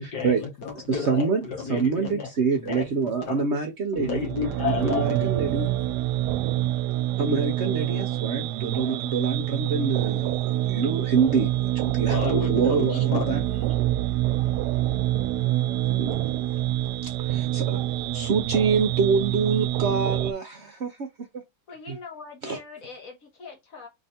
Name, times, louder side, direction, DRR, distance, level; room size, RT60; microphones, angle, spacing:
voice 1, 0.0-2.3 2.6-3.4 3.9-5.3 12.1-13.6, left 5 dB, 70° left, 1.9 m, -31 dB
voice 2, 0.9-4.3 4.6-5.7 7.2-13.4 15.9-16.3 16.5-16.6 17.0-21.1 21.3-21.4 21.9-22.0 22.4-22.6, right 5 dB, 55° right, 0.8 m, -26 dB
sound 1, 4.0-20.3, right 15 dB, 75° right, 1.1 m, -26 dB
voice 3, 21.7-23.9, left 4 dB, 50° left, 1.7 m, -42 dB
3.5 x 3.3 x 4.2 m
omnidirectional pair, 1.9 m